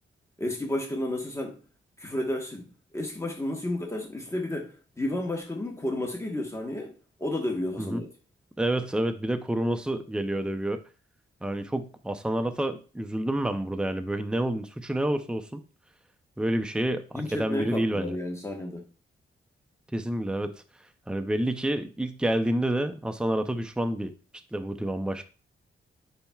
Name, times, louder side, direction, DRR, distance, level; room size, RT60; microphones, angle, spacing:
voice 1, 0.4-1.6 2.0-6.9 7.2-8.1 17.1-18.9, left 1 dB, 15° left, 1.3 m, -32 dB
voice 2, 8.6-10.8 11.4-15.6 16.4-18.2 19.9-20.6 21.1-24.1 24.5-25.3, right 1 dB, 5° right, 0.6 m, -28 dB
8.6 x 5.7 x 2.4 m
wide cardioid pair, 110°, 21 cm